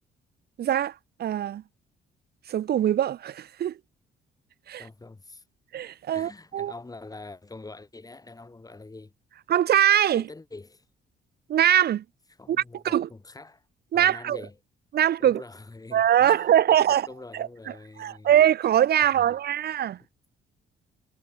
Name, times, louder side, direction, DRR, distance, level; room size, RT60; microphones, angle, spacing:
voice 1, 0.6-0.9 1.2-1.6 2.5-3.7 4.7-4.9 5.7-6.7 9.5-10.2 11.5-12.0 12.5-13.1 13.9-14.4 14.9-15.4 15.9-17.1 17.3-17.5 18.0-20.0, right 11 dB, 55° right, 0.5 m, -22 dB
voice 2, 4.8-5.4 6.1-9.1 10.1-10.9 12.4-13.6 13.9-14.6 15.2-16.5 16.9-18.4 19.0-19.3, left 3 dB, 20° left, 2.2 m, -44 dB
cardioid pair, 90°, 20 cm